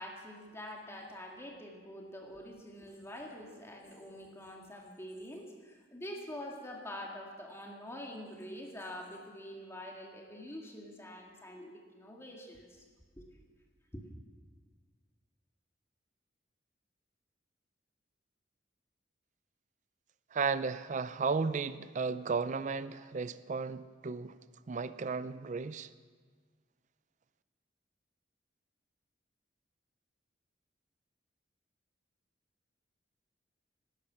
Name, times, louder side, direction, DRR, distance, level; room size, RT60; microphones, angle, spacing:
voice 1, 0.0-12.9 13.2-13.3 13.9-14.0, left 1 dB, 15° left, 1.9 m, -46 dB
voice 2, 20.3-24.4 24.7-25.9, right 4 dB, 45° right, 0.5 m, -34 dB
19.0 x 12.0 x 5.8 m
head